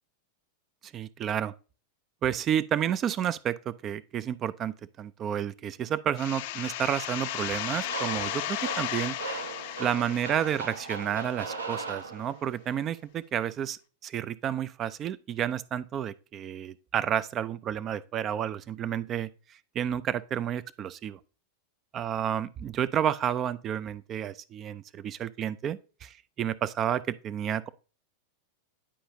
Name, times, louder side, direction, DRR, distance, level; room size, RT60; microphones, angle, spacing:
voice 1, 0.9-1.5 2.2-9.2 9.8-19.3 19.8-21.2 21.9-27.7, right 9 dB, 30° right, 0.4 m, -31 dB
sound 1, 6.2-11.7, left 12 dB, 50° left, 0.4 m, -35 dB
sound 2, 7.8-12.6, right 4 dB, 75° right, 0.7 m, -38 dB
10.0 x 4.8 x 2.6 m
figure-of-eight pair, 90°, 0 cm